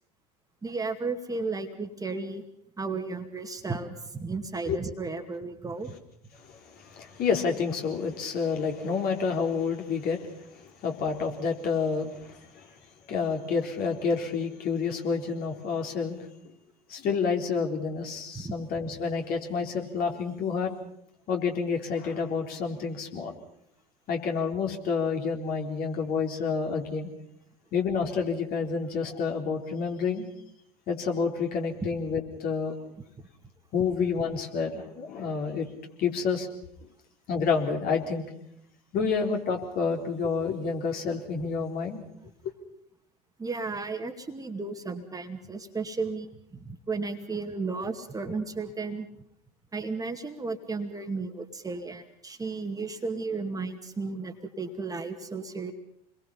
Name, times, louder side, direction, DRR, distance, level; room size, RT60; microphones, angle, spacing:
voice 1, 0.6-2.4 2.8-6.0 18.4-18.5 33.2-33.3 43.4-49.1 49.7-55.7, right 4 dB, 15° right, 5 dB, 2.2 m, -34 dB
voice 2, 6.4-12.7 13.1-16.5 16.9-20.7 21.3-23.3 24.1-27.1 27.7-30.3 30.9-32.7 33.7-35.7 36.0-36.5 36.8-36.9 37.3-38.2 38.9-42.0, left 5 dB, 50° left, 2 dB, 3.9 m, -29 dB
28.0 x 22.0 x 5.7 m, 0.73 s
figure-of-eight pair, 75°, 20 cm